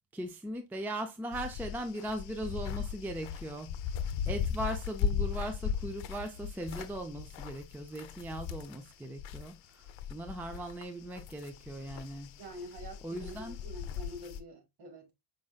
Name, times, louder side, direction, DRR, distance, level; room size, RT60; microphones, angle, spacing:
voice 1, 0.1-3.7 4.3-9.8 10.1-12.3 13.0-13.6, right 1 dB, 5° right, 0.4 m, -39 dB
sound 1, 1.3-9.5 9.8-14.4, left 8 dB, 70° left, 0.7 m, -37 dB
voice 2, 12.4-15.1, equal, 55° right, 1.6 m, -46 dB
5.2 x 3.7 x 2.3 m
cardioid pair, 125°, 47 cm